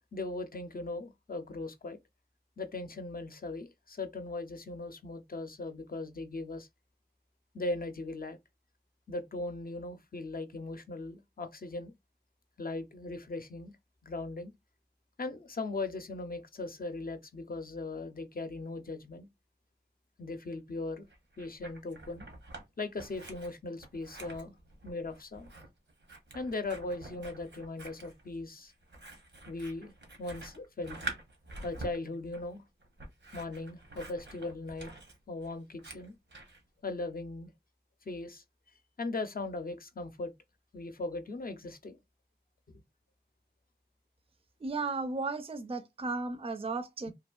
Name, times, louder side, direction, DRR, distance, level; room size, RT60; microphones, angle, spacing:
voice 1, 0.1-2.0 2.6-6.7 7.5-8.4 9.1-11.9 12.6-13.8 14.0-14.5 15.2-19.3 20.2-21.1 21.4-22.3 22.8-24.6 24.8-25.5 26.3-28.7 29.5-29.9 30.2-31.0 31.6-32.6 33.3-34.9 35.3-36.1 36.8-37.5 38.1-38.4 39.0-40.3 40.7-42.0, left 2 dB, 55° left, 0.5 m, -38 dB
Scissors, 21.1-22.6 23.0-36.6, right 2 dB, 90° right, 0.8 m, -47 dB
voice 2, 44.6-47.1, right 3 dB, 30° right, 0.4 m, -35 dB
2.9 x 2.5 x 2.2 m
wide cardioid pair, 40°, 18 cm